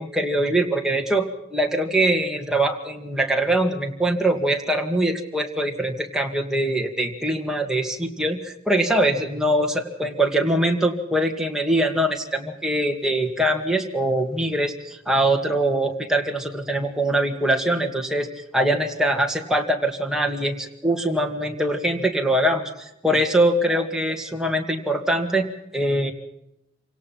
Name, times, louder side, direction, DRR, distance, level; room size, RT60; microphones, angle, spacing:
voice 1, 0.0-25.5 25.7-26.1, right 1 dB, 5° right, 2 dB, 2.2 m, -23 dB
27.5 x 18.0 x 5.8 m, 0.84 s
head